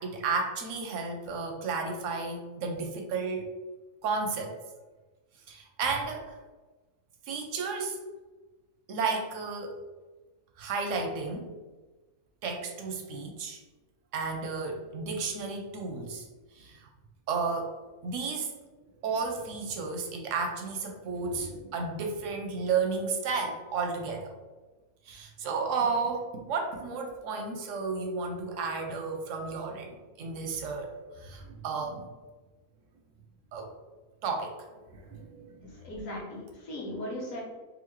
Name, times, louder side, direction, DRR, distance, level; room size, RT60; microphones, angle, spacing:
voice 1, 0.0-3.5 4.0-4.6 5.5-6.4 7.3-8.0 8.9-9.8 10.6-11.5 12.4-13.6 14.1-16.3 16.6-16.9 17.3-17.8 18.0-18.5 19.0-24.3 25.1-32.1 33.5-33.7 34.2-34.6 34.9-35.8, right 4 dB, 70° right, 3 dB, 0.8 m, -33 dB
voice 2, 35.8-37.4, left 1 dB, 60° left, -3 dB, 1.3 m, -37 dB
3.9 x 2.5 x 2.9 m, 1.2 s
omnidirectional pair, 1.6 m